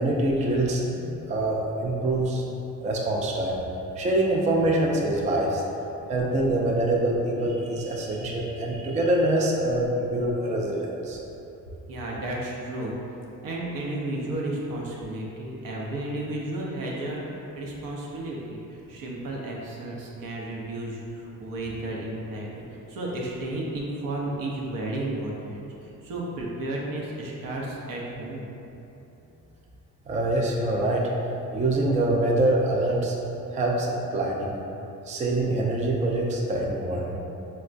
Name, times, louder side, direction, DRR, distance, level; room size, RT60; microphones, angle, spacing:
voice 1, 0.0-2.4 2.8-3.6 4.0-5.6 6.1-11.2 30.1-31.1 31.5-33.2 33.5-34.6 35.1-37.2, right 1 dB, 20° right, -2 dB, 0.3 m, -25 dB
voice 2, 11.9-12.9 13.4-28.5, right 1 dB, 75° right, -3 dB, 0.7 m, -33 dB
4.5 x 2.1 x 2.5 m, 3.0 s
cardioid pair, 95°, 34 cm